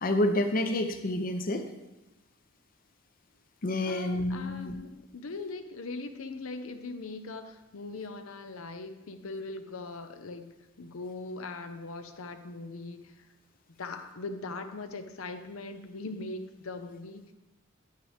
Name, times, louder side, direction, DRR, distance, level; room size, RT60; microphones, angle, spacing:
voice 1, 0.0-1.7 3.6-4.7, left 1 dB, 40° left, 6 dB, 0.6 m, -28 dB
voice 2, 3.8-13.3 13.8-17.2, left 3 dB, 75° left, 8 dB, 0.7 m, -40 dB
9.0 x 8.7 x 3.4 m, 0.98 s
head